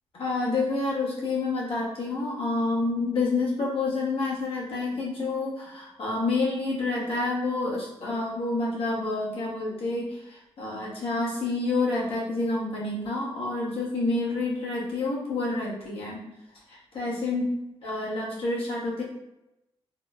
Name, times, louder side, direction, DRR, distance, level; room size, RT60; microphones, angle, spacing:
voice 1, 0.2-16.2 16.7-17.4 17.8-19.0, left 3 dB, 60° left, -5 dB, 0.9 m, -28 dB
3.7 x 2.1 x 2.3 m, 0.90 s
cardioid pair, 120°, 10 cm